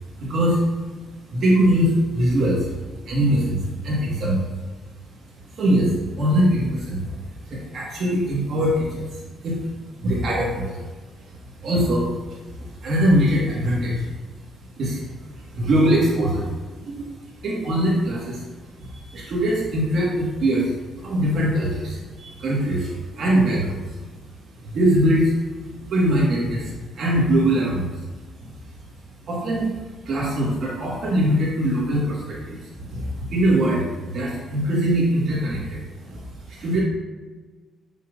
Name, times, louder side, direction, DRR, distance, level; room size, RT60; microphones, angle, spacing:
voice 1, 0.2-0.6 1.3-2.7 3.0-4.4 5.6-7.2 7.5-9.1 9.4-9.6 10.0-10.9 11.6-12.4 12.8-14.0 14.8-15.1 15.5-17.1 17.4-18.4 18.8-20.7 21.0-24.0 24.6-25.3 25.9-27.9 28.4-28.5 29.3-29.7 30.1-36.2 36.5-36.8, equal, 60° right, -4 dB, 1.6 m, -22 dB
7.8 x 5.6 x 2.6 m, 1.3 s
cardioid pair, 90°, 0 cm